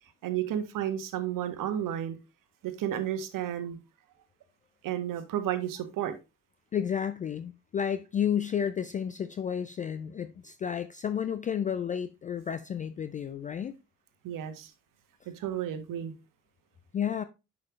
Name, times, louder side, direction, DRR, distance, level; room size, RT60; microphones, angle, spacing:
voice 1, 0.2-2.2 2.6-3.8 4.8-6.1 14.2-14.7 15.3-16.1, right 11 dB, 45° right, 1.5 m, -32 dB
voice 2, 6.7-13.7 16.9-17.2, left 8 dB, 20° left, 0.4 m, -31 dB
10.5 x 5.6 x 3.1 m
figure-of-eight pair, 55°, 45 cm